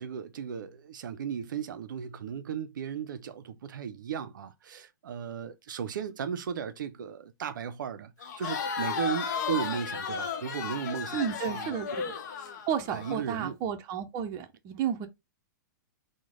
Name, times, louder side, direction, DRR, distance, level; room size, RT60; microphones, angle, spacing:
voice 1, 0.0-11.7 12.9-13.6, right 8 dB, 85° right, 0.4 m, -36 dB
Crowd, 8.2-13.2, left 6 dB, 65° left, 0.7 m, -34 dB
voice 2, 11.1-11.9 12.7-15.1, right 8 dB, 35° right, 0.5 m, -32 dB
3.0 x 2.1 x 3.6 m
hypercardioid pair, 130°, 10 cm